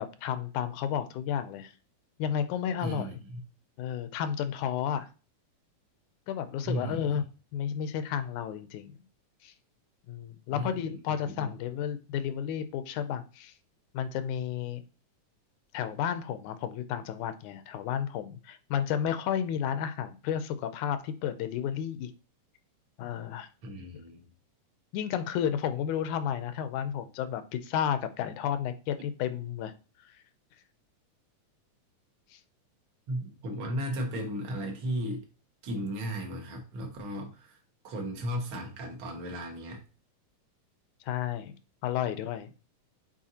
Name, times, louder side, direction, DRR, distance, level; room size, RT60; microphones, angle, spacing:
voice 1, 0.0-1.7 2.2-3.2 3.8-5.1 6.3-7.3 7.5-9.0 9.4-9.5 10.1-13.5 13.9-14.8 15.7-22.1 23.0-23.5 23.9-24.0 24.9-29.7 32.3-32.4 41.1-41.5 41.8-42.5, left 9 dB, 80° left, 11 dB, 2.0 m, -32 dB
voice 2, 2.8-3.4 6.6-7.0 10.5-11.0 11.4-11.5 23.6-24.2 33.1-35.3 35.6-37.6 37.8-39.8, equal, 50° right, 2 dB, 1.9 m, -35 dB
7.4 x 4.6 x 2.8 m, 0.34 s
omnidirectional pair, 3.5 m